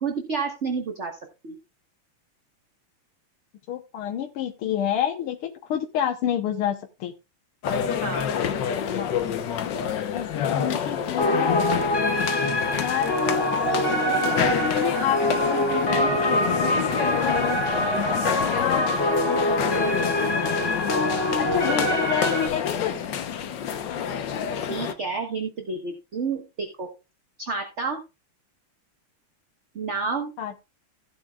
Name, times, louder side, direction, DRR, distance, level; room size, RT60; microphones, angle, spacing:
voice 1, 0.0-1.1 1.4-1.6 8.0-8.2 24.6-26.9 27.4-28.0 29.7-30.3, right 4 dB, 35° right, 4 dB, 1.5 m, -30 dB
voice 2, 3.7-7.1 10.1-10.3 10.6-11.7 12.7-13.1 14.1-16.1 17.1-17.6 18.1-18.2 18.5-19.0 19.3-20.4 21.4-23.1 30.4-30.6, left 10 dB, 85° left, 4 dB, 1.9 m, -29 dB
sound 1, 7.6-24.9, left 8 dB, 60° left, 1.5 m, -28 dB
sound 2, 11.2-22.5, equal, 30° left, 4.2 m, -25 dB
16.0 x 8.3 x 2.3 m, 0.27 s
omnidirectional pair, 2.4 m